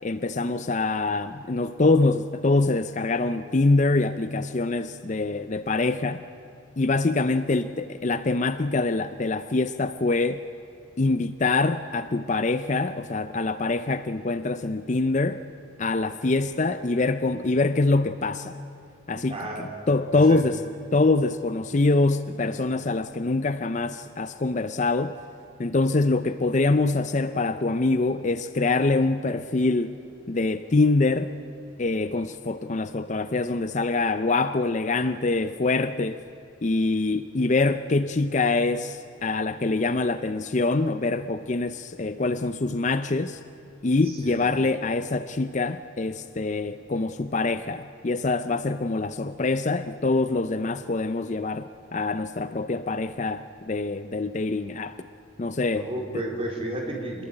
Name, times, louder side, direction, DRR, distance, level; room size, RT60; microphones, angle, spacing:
voice 1, 0.0-6.2 6.8-10.4 11.0-15.4 15.8-18.6 19.1-20.6 20.9-25.1 25.6-29.9 30.3-31.3 31.8-36.2 36.6-43.4 43.8-55.1 55.4-55.9, left 3 dB, 35° left, 12 dB, 0.5 m, -24 dB
voice 2, 19.2-19.7 20.1-20.4 44.2-44.4 55.7-57.3, right 1 dB, 30° right, -1 dB, 4.0 m, -32 dB
26.0 x 20.5 x 8.8 m, 2.6 s
head